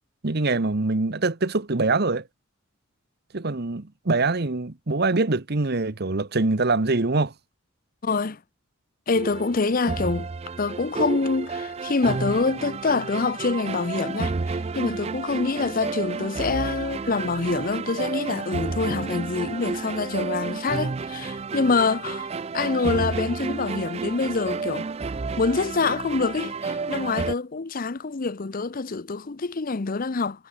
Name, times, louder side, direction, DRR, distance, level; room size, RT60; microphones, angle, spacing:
voice 1, 0.2-2.2 3.3-7.3, right 3 dB, 50° right, 1.1 m, -24 dB
voice 2, 8.0-8.4 9.1-10.3 10.6-24.9 25.4-30.5, left 4 dB, 40° left, 0.6 m, -26 dB
sound 1, 9.1-27.4, right 4 dB, 30° right, 0.4 m, -31 dB
Drum, 18.9-20.6, left 1 dB, 65° left, 2.8 m, -40 dB
head